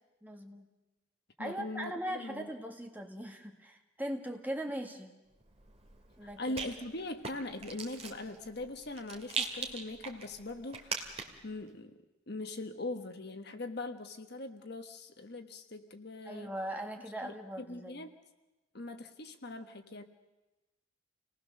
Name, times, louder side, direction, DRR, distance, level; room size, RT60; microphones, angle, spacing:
voice 1, 0.2-0.7 1.4-5.1 6.2-6.5 16.3-18.0, right 1 dB, 10° right, 2 dB, 1.8 m, -40 dB
voice 2, 1.4-2.5 6.4-16.5 17.2-18.1 18.7-20.0, left 2 dB, 50° left, 7 dB, 1.4 m, -41 dB
Rattle, 5.4-11.5, right 5 dB, 30° right, 2.3 m, -42 dB
28.0 x 19.5 x 6.6 m, 1.0 s
head